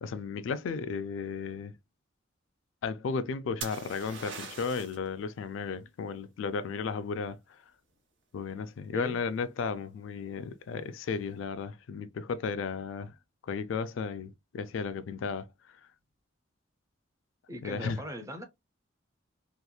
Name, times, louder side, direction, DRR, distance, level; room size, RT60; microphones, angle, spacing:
voice 1, 0.0-1.8 2.8-7.6 8.3-13.1 13.4-15.8 17.6-18.0, left 5 dB, 75° left, 0.3 m, -34 dB
sound 1, 3.6-5.1 8.7-9.2, right 5 dB, 65° right, 0.8 m, -42 dB
voice 2, 17.5-18.4, equal, 15° right, 0.6 m, -39 dB
2.9 x 2.3 x 2.2 m
head